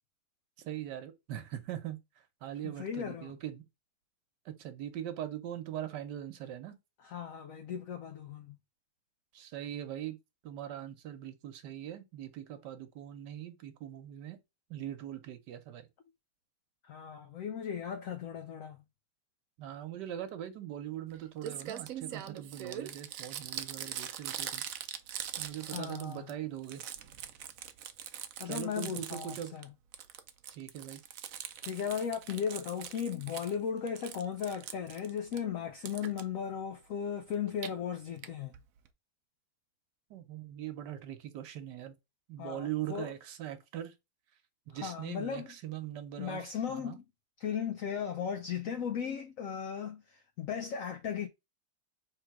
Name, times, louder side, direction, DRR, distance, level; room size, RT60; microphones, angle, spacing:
voice 1, 0.6-2.0 2.4-3.6 4.4-6.8 9.3-10.2 10.4-14.4 14.7-15.9 19.6-24.6 25.4-26.8 28.4-29.5 30.5-31.0 40.1-41.9 42.3-43.9 44.7-47.0, right 11 dB, 85° right, 1.4 m, -41 dB
voice 2, 2.6-3.3 7.0-8.5 16.8-18.8 25.7-26.3 28.4-29.7 31.6-38.5 42.4-43.1 44.7-45.5 46.2-47.0 47.4-51.3, left 7 dB, 70° left, 0.8 m, -36 dB
Crumpling crinkling, 21.1-21.2 21.4-26.3 26.6-29.6 29.9-33.5 33.9-35.4 35.8-36.2 37.3-37.7 38.2-38.3 38.5-38.6 38.8-38.9, right 10 dB, 70° right, 0.8 m, -42 dB
3.4 x 3.2 x 4.6 m
omnidirectional pair, 1.8 m